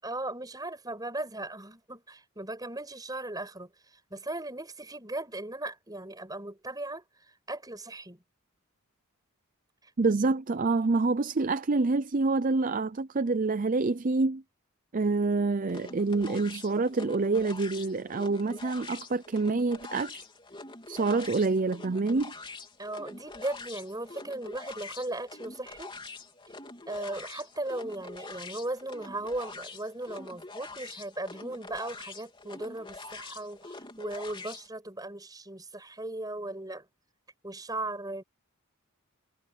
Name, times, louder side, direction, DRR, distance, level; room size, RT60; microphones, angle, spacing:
voice 1, 0.0-7.0 7.5-8.2 9.8-9.9 22.8-25.9 26.9-36.9 37.4-38.2, right 2 dB, 15° right, 6.9 m, -37 dB
voice 2, 10.0-14.4 14.9-20.1 20.9-22.3, right 3 dB, 40° right, 0.5 m, -27 dB
sound 1, 15.7-34.7, left 3 dB, 25° left, 3.8 m, -45 dB
head